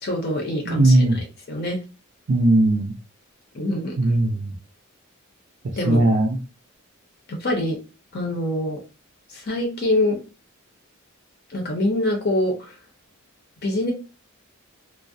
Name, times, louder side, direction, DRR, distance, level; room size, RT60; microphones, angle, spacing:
voice 1, 0.0-1.8 3.5-4.0 5.7-6.0 7.3-7.8 8.1-8.8 9.3-10.2 11.5-12.7 13.6-13.9, left 1 dB, 45° left, 0 dB, 0.6 m, -25 dB
voice 2, 0.7-1.2 2.3-2.9 4.0-4.5 5.9-6.4, right 1 dB, 55° right, 0 dB, 0.4 m, -18 dB
2.3 x 2.0 x 2.6 m, 0.31 s
head